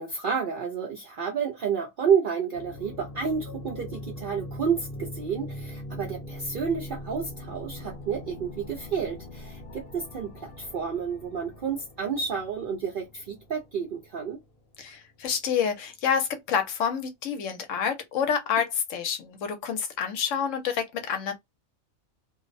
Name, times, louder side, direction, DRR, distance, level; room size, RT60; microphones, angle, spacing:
voice 1, 0.0-14.4, right 6 dB, 55° right, 0.6 m, -30 dB
sound 1, 2.5-15.2, left 1 dB, 50° left, 0.8 m, -42 dB
voice 2, 14.8-21.3, left 7 dB, 75° left, 1.0 m, -28 dB
2.5 x 2.1 x 2.4 m
omnidirectional pair, 1.4 m